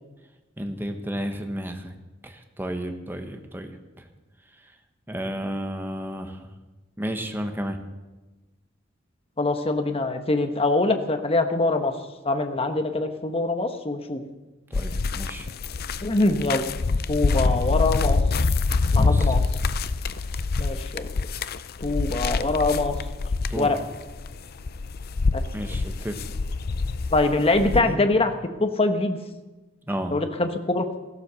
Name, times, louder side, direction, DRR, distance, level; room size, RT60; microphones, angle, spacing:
voice 1, 0.6-2.0 2.2-3.7 4.0-4.1 5.1-6.5 7.0-7.8 14.7-15.5 19.0-19.3 23.5-23.7 25.5-26.2 27.7-28.0 29.9-30.1, equal, 10° right, 5 dB, 1.3 m, -32 dB
voice 2, 9.4-11.9 12.2-14.2 16.0-16.6 17.1-18.2 18.9-19.4 20.6-21.1 21.8-22.9 23.5-23.8 25.3-25.4 27.1-28.3 28.6-29.2 30.1-30.9, left 2 dB, 30° left, 7 dB, 1.2 m, -23 dB
big bear lake - pine knot hike, 14.7-27.8, left 3 dB, 50° left, 0.5 m, -25 dB
15.0 x 12.0 x 6.9 m, 1.1 s
head